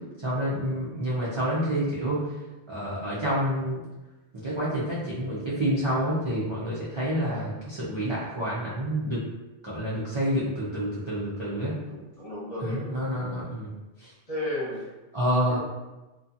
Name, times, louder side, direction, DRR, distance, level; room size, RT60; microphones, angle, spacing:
voice 1, 0.2-2.2 2.7-3.8 4.4-9.2 9.6-11.8 12.6-13.7 14.0-14.1 15.1-15.6, equal, 40° right, -8 dB, 0.4 m, -28 dB
voice 2, 11.8-13.2 14.3-14.8 15.5-15.6, left 1 dB, 35° left, -8 dB, 0.8 m, -34 dB
2.6 x 2.2 x 2.6 m, 1.1 s
omnidirectional pair, 1.2 m